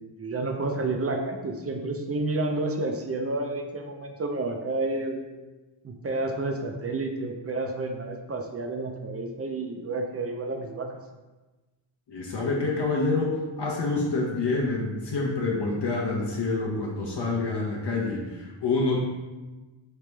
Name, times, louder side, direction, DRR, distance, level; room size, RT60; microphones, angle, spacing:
voice 1, 0.0-5.2 5.8-10.9, right 2 dB, 30° right, 4 dB, 0.4 m, -30 dB
voice 2, 12.1-19.0, left 3 dB, 55° left, -1 dB, 0.8 m, -27 dB
3.3 x 2.9 x 3.2 m, 1.2 s
cardioid pair, 65°, 50 cm